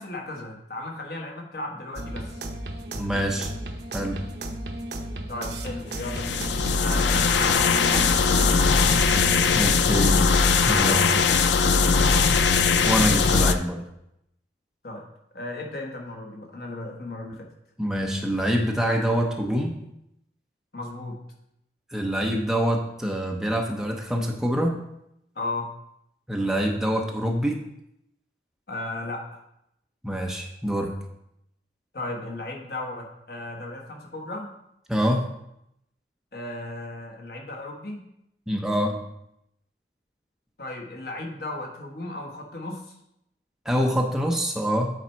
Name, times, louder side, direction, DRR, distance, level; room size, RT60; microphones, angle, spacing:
voice 1, 0.0-2.4 5.3-6.4 6.8-9.3 10.8-12.6 14.8-15.0 15.3-17.5 20.7-21.2 25.3-25.7 28.7-29.4 31.9-34.5 36.3-38.0 40.6-42.9, left 2 dB, 55° left, 0 dB, 1.1 m, -36 dB
sound 1, 2.0-9.4, right 1 dB, 70° right, 0.8 m, -34 dB
voice 2, 3.0-3.5 3.9-4.2 9.5-10.2 10.6-11.0 12.8-13.8 17.8-19.7 21.9-24.8 26.3-27.6 30.0-30.9 34.9-35.2 38.5-39.0 43.7-44.9, equal, 5° right, 0 dB, 0.7 m, -25 dB
sound 2, 6.0-13.5, left 5 dB, 80° left, 0.4 m, -20 dB
8.5 x 4.1 x 4.5 m, 0.81 s
head